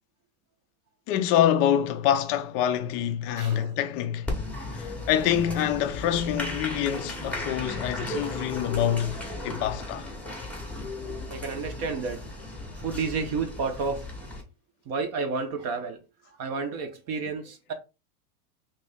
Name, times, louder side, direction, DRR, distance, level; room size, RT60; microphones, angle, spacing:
voice 1, 1.1-4.3 4.7-10.1, left 10 dB, 30° left, 0.4 m, -26 dB
voice 2, 3.4-3.8 11.1-12.2 12.7-14.1 14.9-17.7, right 4 dB, 35° right, 0.6 m, -31 dB
Applause, 4.3-14.4, left 2 dB, 5° left, 0.8 m, -35 dB
2.9 x 2.7 x 3.4 m
supercardioid pair, 130°, 45 cm